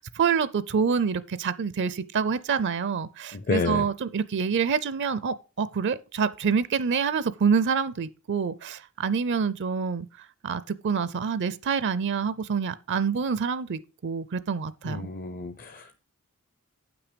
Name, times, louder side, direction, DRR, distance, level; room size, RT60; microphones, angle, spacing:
voice 1, 0.0-15.0, right 6 dB, 55° right, 0.5 m, -27 dB
voice 2, 3.3-3.8 14.9-16.0, left 3 dB, 40° left, 0.6 m, -30 dB
8.5 x 6.0 x 5.1 m
head